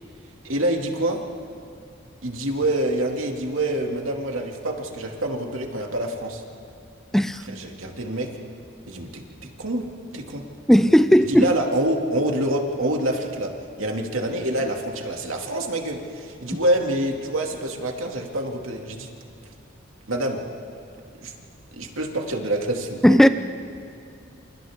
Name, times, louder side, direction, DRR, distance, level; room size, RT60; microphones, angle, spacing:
voice 1, 0.4-1.2 2.2-6.4 7.5-8.3 8.9-9.8 10.1-10.4 11.2-13.5 13.8-19.1 20.1-20.4 21.2-21.3 21.7-23.2, right 1 dB, 85° right, 1 dB, 2.5 m, -26 dB
voice 2, 10.7-11.5 23.0-23.3, equal, ahead, 10 dB, 0.4 m, -15 dB
28.5 x 28.5 x 3.7 m, 2.5 s
head